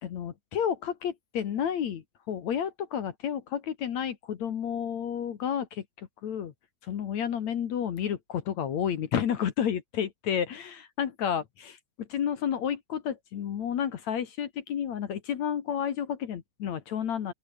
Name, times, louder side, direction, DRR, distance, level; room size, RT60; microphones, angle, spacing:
voice 1, 0.0-6.5 6.9-17.3, left 8 dB, 55° left, 2.4 m, -31 dB
open air
omnidirectional pair, 4.6 m